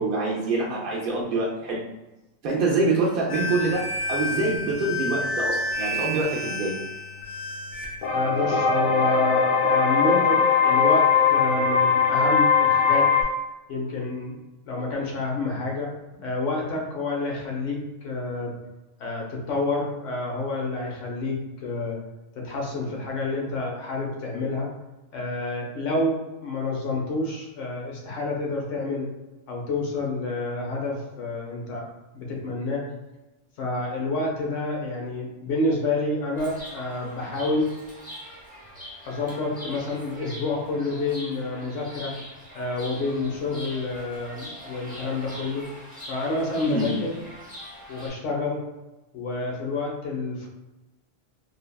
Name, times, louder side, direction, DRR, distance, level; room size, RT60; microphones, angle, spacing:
voice 1, 0.0-1.8 2.4-6.8 46.6-46.9, right 3 dB, 60° right, -4 dB, 0.6 m, -25 dB
sound 1, 3.3-13.2, left 5 dB, 55° left, 0.6 m, -22 dB
voice 2, 8.1-13.1 13.7-14.3 14.7-18.5 19.0-22.0 22.3-24.7 25.1-29.1 29.5-31.8 32.1-32.9 33.6-37.8 39.0-42.1 42.5-45.7 46.1-47.2 47.9-48.6 49.1-50.5, left 2 dB, 85° left, -1 dB, 1.1 m, -29 dB
Chirp tweet, 36.3-48.1, equal, 10° right, 0.6 m, -42 dB
3.3 x 2.2 x 2.2 m, 1.0 s
omnidirectional pair, 1.2 m